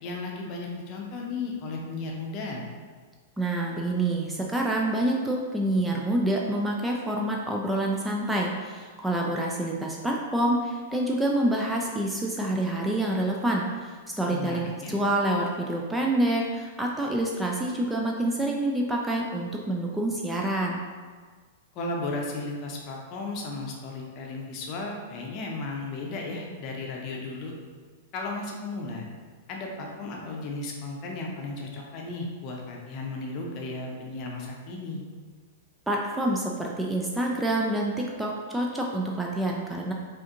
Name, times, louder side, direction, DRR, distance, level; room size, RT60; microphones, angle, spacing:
voice 1, 0.0-2.6 14.3-15.0 21.7-27.5 28.1-29.1 29.5-35.0, left 3 dB, 40° left, 0 dB, 0.7 m, -35 dB
voice 2, 3.4-20.8 35.9-39.9, right 1 dB, 5° right, -2 dB, 0.4 m, -27 dB
4.8 x 2.6 x 2.6 m, 1.5 s
figure-of-eight pair, 100°, 0 cm